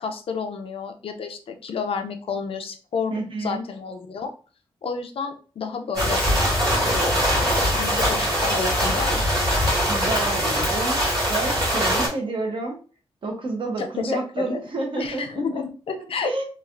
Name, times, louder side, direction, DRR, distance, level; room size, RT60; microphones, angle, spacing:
voice 1, 0.0-3.1 3.4-4.3 4.8-6.2 6.9-9.2 13.8-14.6 15.0-16.4, left 5 dB, 65° left, 6 dB, 0.4 m, -30 dB
voice 2, 3.1-3.6 9.9-11.0 11.3-12.8 13.2-15.6 16.2-16.4, right 2 dB, 55° right, 2 dB, 0.8 m, -29 dB
sound 1, 5.9-12.1, equal, 40° right, 1.4 m, -22 dB
3.1 x 2.4 x 2.5 m, 0.37 s
wide cardioid pair, 175°, 10 cm